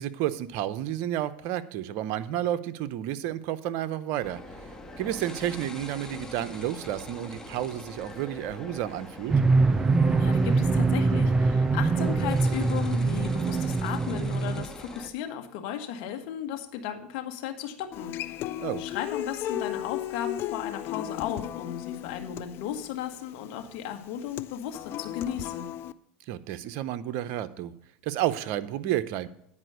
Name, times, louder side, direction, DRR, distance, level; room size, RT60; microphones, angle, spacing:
voice 1, 0.0-4.4 5.0-9.3 18.6-18.8 26.3-27.7 28.0-29.3, right 12 dB, 60° right, 12 dB, 0.7 m, -31 dB
sound 1, 4.2-15.1, left 1 dB, 10° left, 1.4 m, -43 dB
sound 2, 9.3-14.7, right 3 dB, 20° right, 0.3 m, -23 dB
voice 2, 10.2-18.4 18.8-25.7, left 9 dB, 65° left, 5 dB, 1.6 m, -35 dB
Human voice / Acoustic guitar, 17.9-25.9, left 12 dB, 45° left, 0.5 m, -35 dB
9.7 x 5.1 x 8.0 m, 0.70 s
hypercardioid pair, 100°, 5 cm